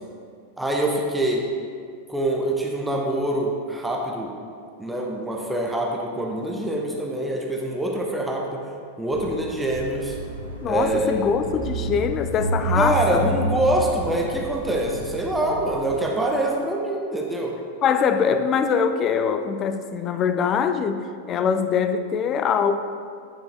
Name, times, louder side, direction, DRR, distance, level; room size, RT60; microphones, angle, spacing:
voice 1, 0.6-1.4 2.1-4.3 4.8-8.6 9.0-10.1 10.6-11.3 12.7-17.6, right 1 dB, 5° right, -1 dB, 0.8 m, -25 dB
sound 1, 9.1-16.0, right 2 dB, 85° left, 0.9 m, -30 dB
voice 2, 10.6-13.3 17.8-22.8, left 6 dB, 30° left, 9 dB, 0.4 m, -23 dB
8.8 x 5.1 x 3.4 m, 2.2 s
figure-of-eight pair, 90°, 0 cm